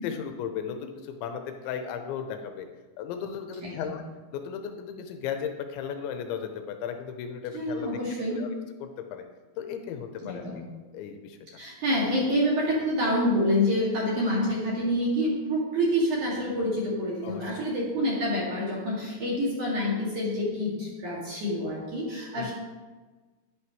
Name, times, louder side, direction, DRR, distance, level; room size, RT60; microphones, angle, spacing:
voice 1, 0.0-2.7 3.0-4.0 4.3-7.9 8.3-8.5 8.8-9.2 9.6-10.4 10.9-11.4 17.2-17.6 22.4-22.5, left 8 dB, 85° left, 6 dB, 2.8 m, -35 dB
voice 2, 3.6-3.9 7.5-8.5 10.2-10.6 11.6-22.5, equal, 50° right, -4 dB, 2.8 m, -27 dB
11.5 x 11.0 x 3.1 m, 1.3 s
omnidirectional pair, 5.9 m